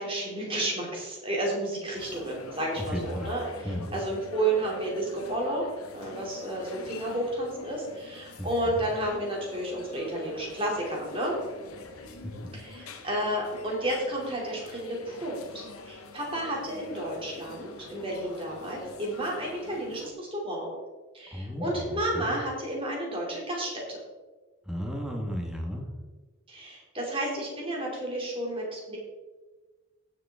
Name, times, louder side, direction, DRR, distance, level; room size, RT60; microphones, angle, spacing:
voice 1, 0.0-5.6 5.9-11.4 12.5-20.7 21.1-24.0 26.5-29.0, right 1 dB, 25° right, -2 dB, 2.7 m, -31 dB
sound 1, 1.9-20.1, left 3 dB, 85° left, 1.2 m, -45 dB
voice 2, 2.8-3.3 3.6-3.9 8.4-8.5 11.8-12.1 12.7-13.0 21.3-22.3 24.7-25.8, equal, 5° right, 0 dB, 1.5 m, -34 dB
17.0 x 6.8 x 3.6 m, 1.3 s
head